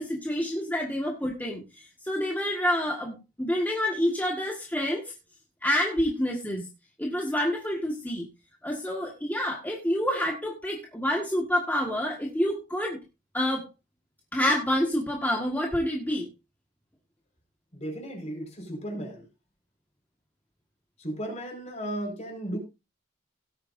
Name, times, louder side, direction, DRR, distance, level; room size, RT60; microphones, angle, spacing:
voice 1, 0.0-5.1 5.6-6.6 7.0-8.3 8.6-13.0 13.3-13.6 14.3-16.3, equal, 10° left, 0 dB, 1.7 m, -28 dB
voice 2, 17.7-19.2 21.0-22.6, right 1 dB, 35° left, 3 dB, 5.1 m, -35 dB
18.0 x 9.2 x 2.7 m, 0.26 s
head